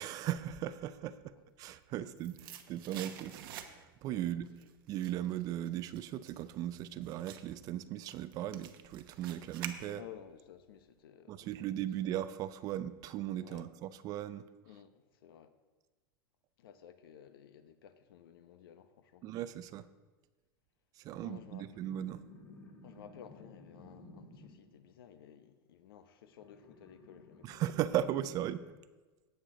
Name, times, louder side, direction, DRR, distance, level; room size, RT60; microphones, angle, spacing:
voice 1, 0.0-4.6 4.9-10.0 11.3-14.5 19.2-19.9 21.0-22.2 27.4-28.7, right 12 dB, 30° right, 0.4 m, -37 dB
sound 1, 1.7-4.1 4.4-10.3 10.6-10.7, right 11 dB, 70° right, 1.0 m, -49 dB
voice 2, 9.9-11.7 13.4-13.7 14.7-15.5 16.6-19.3 21.2-21.7 22.8-27.9, left 9 dB, 80° left, 1.0 m, -55 dB
sound 2, 21.1-24.7 26.2-28.3, left 2 dB, 25° left, 2.8 m, -55 dB
17.5 x 6.7 x 3.9 m
supercardioid pair, 150°, 12 cm